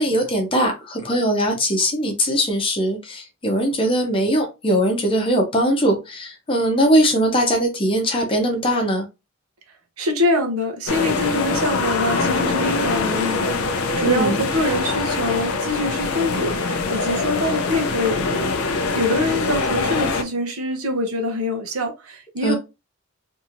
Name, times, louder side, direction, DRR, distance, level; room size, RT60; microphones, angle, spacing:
voice 1, 0.0-9.1 14.1-14.4 22.4-22.5, equal, 25° left, 0.7 m, -20 dB
voice 2, 10.0-22.5, left 1 dB, 85° right, 0.8 m, -24 dB
sound 1, 10.9-20.2, left 3 dB, 75° left, 0.4 m, -23 dB
2.8 x 2.7 x 2.5 m
head